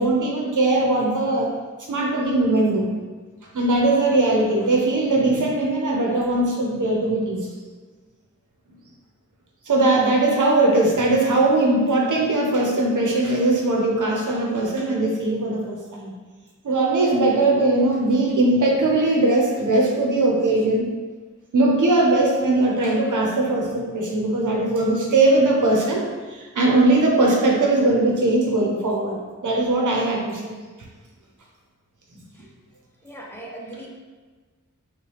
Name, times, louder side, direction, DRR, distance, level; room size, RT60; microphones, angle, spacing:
voice 1, 0.0-1.5 1.9-2.9 3.5-7.5 9.7-16.1 16.6-20.9 21.5-26.0 26.3-30.5, right 2 dB, 80° right, -1 dB, 0.9 m, -20 dB
voice 2, 33.0-33.9, right 1 dB, 10° left, -3 dB, 0.9 m, -38 dB
5.4 x 2.4 x 3.3 m, 1.4 s
wide cardioid pair, 55°, 30 cm